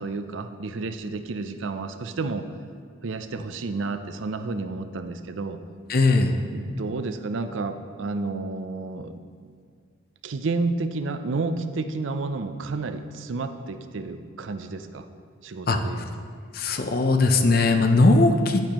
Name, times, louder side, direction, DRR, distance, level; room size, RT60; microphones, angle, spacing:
voice 1, 0.0-2.5 3.0-5.6 6.5-9.2 10.2-15.1 15.4-16.1, right 3 dB, 85° right, 9 dB, 0.5 m, -31 dB
voice 2, 5.9-6.3 15.7-15.8 16.5-18.6, left 3 dB, 50° left, 6 dB, 0.6 m, -19 dB
9.6 x 9.2 x 3.0 m, 2.1 s
head